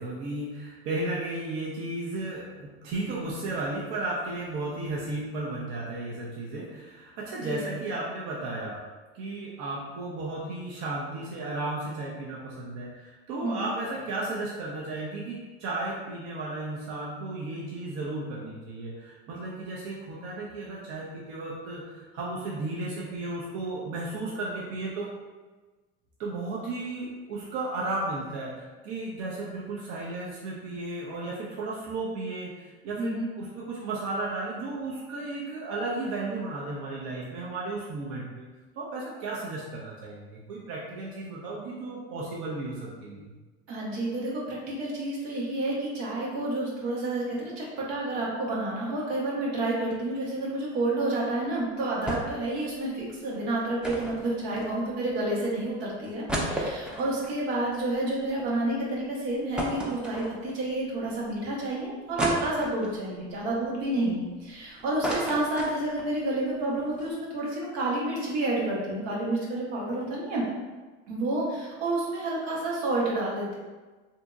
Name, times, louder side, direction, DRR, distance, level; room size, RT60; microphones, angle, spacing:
voice 1, 0.0-8.8 9.1-25.1 26.2-38.5 38.8-43.3, right 2 dB, 60° right, -4 dB, 0.6 m, -34 dB
voice 2, 33.0-33.3 43.7-70.4 71.1-73.5, right 2 dB, 80° right, -4 dB, 1.0 m, -29 dB
sound 1, 52.1-52.5 52.8-52.9 53.8-55.1 55.6-55.7 56.0-58.5 58.9-59.0 59.6-60.7 61.2-61.3 62.2-63.0 63.6-64.5 64.8-66.1 66.5-66.6 66.8-67.1, equal, 5° right, 0.4 m, -33 dB
2.7 x 2.6 x 2.3 m, 1.3 s
supercardioid pair, 95°, 33 cm